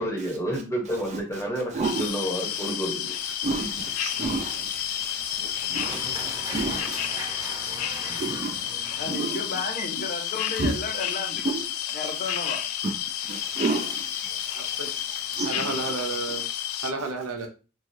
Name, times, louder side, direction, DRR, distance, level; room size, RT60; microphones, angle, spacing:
voice 1, 0.0-3.7 5.9-6.0, right 1 dB, 15° left, 0.8 m, -30 dB
sound 1, 1.8-16.9, left 11 dB, 90° left, 0.3 m, -31 dB
voice 2, 3.4-7.0 8.2-8.6 9.1-9.4 10.6-10.8 13.3-15.9 16.3-16.4, right 3 dB, 35° right, 0.4 m, -31 dB
sound 2, 5.7-9.8, right 1 dB, 15° right, 0.8 m, -39 dB
voice 3, 8.9-11.4 11.9-12.6, left 3 dB, 40° left, 0.6 m, -33 dB
voice 4, 14.6-14.9 15.4-16.4 16.8-17.5, right 3 dB, 85° right, 0.6 m, -31 dB
3.1 x 2.3 x 2.6 m
head